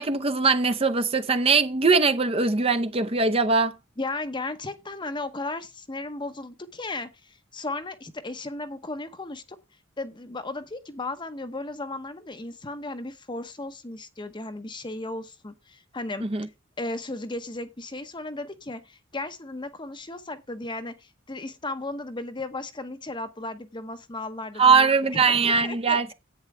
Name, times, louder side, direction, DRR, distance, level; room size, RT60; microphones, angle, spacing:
voice 1, 0.0-3.7 16.2-16.5 24.6-26.1, right 4 dB, 30° right, 0.8 m, -21 dB
voice 2, 4.0-9.6 10.0-16.3 16.8-26.1, left 2 dB, 25° left, 0.9 m, -35 dB
10.5 x 8.8 x 3.3 m
head